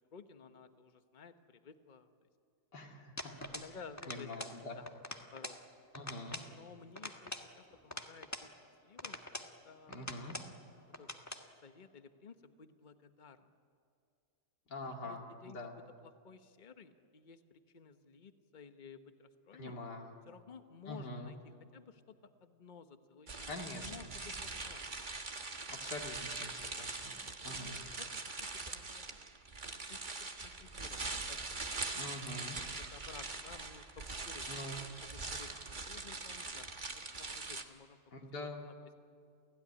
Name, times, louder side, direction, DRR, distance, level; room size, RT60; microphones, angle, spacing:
voice 1, 0.1-2.3 3.2-4.3 4.7-4.9 5.3-5.6 6.0-8.5 8.8-9.9 11.0-11.1 11.6-13.5 14.8-15.6 16.0-19.8 20.3-21.4 21.7-25.0 27.5-28.1 28.7-29.1 29.6-31.4 31.7-32.0 32.9-34.5 34.9-38.0 38.3-38.9, left 6 dB, 30° left, 8 dB, 1.1 m, -55 dB
voice 2, 2.7-3.3 4.1-4.8 5.9-6.4 9.9-10.4 14.7-15.7 19.5-20.1 20.9-21.3 23.5-24.1 25.7-27.2 27.4-27.8 31.9-32.6 34.5-34.8 38.1-38.6, left 2 dB, 80° left, 1 dB, 3.0 m, -45 dB
sound 1, 3.2-3.7 4.0-4.6 4.9-5.6 5.9-6.5 6.9-8.5 9.0-9.5 9.9-10.5 10.9-11.5, left 1 dB, 10° left, 1.3 m, -45 dB
sound 2, 23.3-37.6, right 3 dB, 30° right, 1.4 m, -42 dB
29.0 x 16.5 x 9.9 m, 2.4 s
omnidirectional pair, 1.8 m